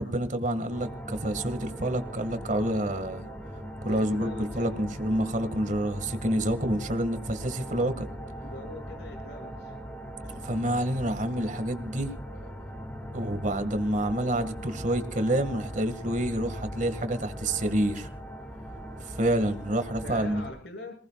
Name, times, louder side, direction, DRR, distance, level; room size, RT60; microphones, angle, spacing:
voice 1, 0.0-3.3 3.8-8.1 10.2-12.1 13.1-18.1 19.0-20.4, right 1 dB, 45° right, 9 dB, 2.1 m, -28 dB
sound 1, 0.7-20.5, equal, 10° left, 2.6 m, -40 dB
voice 2, 3.8-4.7 8.4-9.8 20.0-20.9, left 1 dB, 70° left, 2 dB, 6.8 m, -43 dB
27.5 x 19.0 x 2.5 m, 0.44 s
head